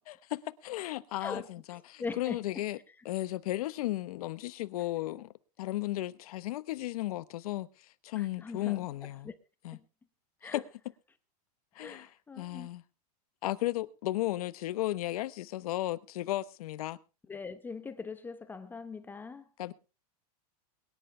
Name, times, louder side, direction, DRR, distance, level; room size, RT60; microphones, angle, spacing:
voice 1, 0.1-2.8 3.0-5.3 5.6-7.7 8.0-9.3 9.6-9.8 10.5-10.6 11.7-12.1 12.4-12.8 13.4-17.0 19.6-19.7, left 16 dB, 70° left, 1.1 m, -34 dB
voice 2, 1.2-2.9 8.2-8.8 9.2-9.4 9.7-9.8 10.4-10.6 11.8-12.7 17.3-19.5, left 4 dB, 10° left, 0.8 m, -42 dB
22.0 x 10.5 x 3.3 m
supercardioid pair, 160°, 20 cm